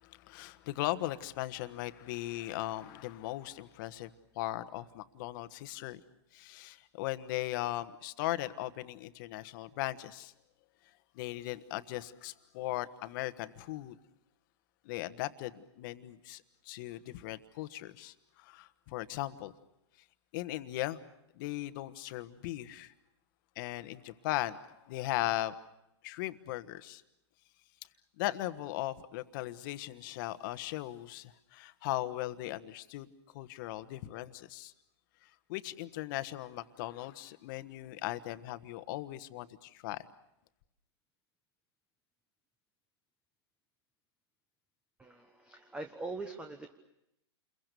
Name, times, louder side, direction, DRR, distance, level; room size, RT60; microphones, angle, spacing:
voice 1, 0.0-4.1 4.3-6.0 6.3-10.3 11.1-13.9 14.8-19.5 20.3-21.0 21.3-22.9 23.5-25.5 26.0-27.0 28.2-33.1 33.3-34.7 35.2-40.1, left 16 dB, 50° left, 12 dB, 1.4 m, -38 dB
voice 2, 45.0-46.7, right 3 dB, 5° right, 6 dB, 1.2 m, -42 dB
29.5 x 22.5 x 6.9 m, 0.84 s
hypercardioid pair, 135°, 14 cm